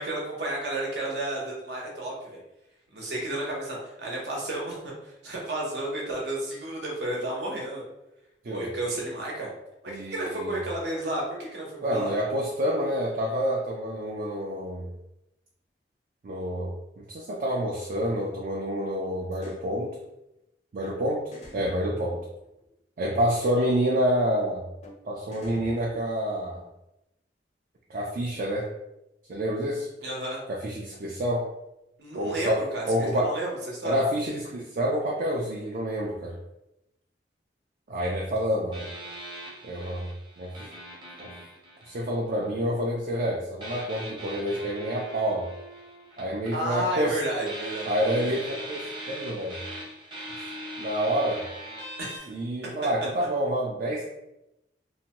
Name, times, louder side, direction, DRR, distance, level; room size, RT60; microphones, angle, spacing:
voice 1, 0.0-2.4 2.9-7.8 8.5-9.5 9.8-12.1 30.0-30.4 32.0-34.0 46.5-48.4 52.0-52.3, right 1 dB, 75° right, -2 dB, 0.8 m, -32 dB
voice 2, 9.9-10.6 11.8-14.9 16.2-20.0 20.7-22.2 23.0-24.6 25.1-26.6 27.9-28.7 29.3-29.9 30.5-31.5 32.1-33.4 33.8-36.4 37.9-38.9 39.6-40.1 40.4-40.5 41.2-41.3 41.9-45.5 46.2-47.2 47.8-49.6 50.4-50.5 50.8-51.4 52.3-54.1, equal, 50° right, -2 dB, 0.4 m, -28 dB
sound 1, 19.3-19.6 20.8-21.0 21.3-22.7 23.3-23.7 24.8-25.0 25.3-26.4, left 1 dB, 40° left, 0.5 m, -46 dB
sound 2, 38.7-42.6 43.6-47.1 47.4-52.2, right 1 dB, 25° right, 0.7 m, -40 dB
2.6 x 2.1 x 2.9 m, 0.90 s
head